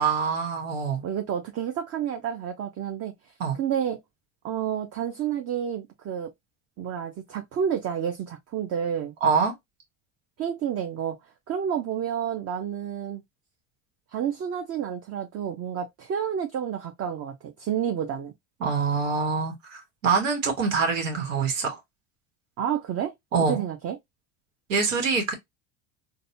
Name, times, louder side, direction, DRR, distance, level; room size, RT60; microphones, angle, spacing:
voice 1, 0.0-1.0 3.4-3.6 9.2-9.5 18.6-21.8 23.3-23.6 24.7-25.3, right 5 dB, 90° right, 1.2 m, -25 dB
voice 2, 1.0-3.1 3.5-4.0 4.4-6.3 6.8-9.1 10.4-11.2 11.5-13.2 14.1-18.3 22.6-23.1 23.5-24.0, right 9 dB, 40° right, 0.7 m, -30 dB
4.0 x 2.2 x 2.7 m
hypercardioid pair, 90°, 38 cm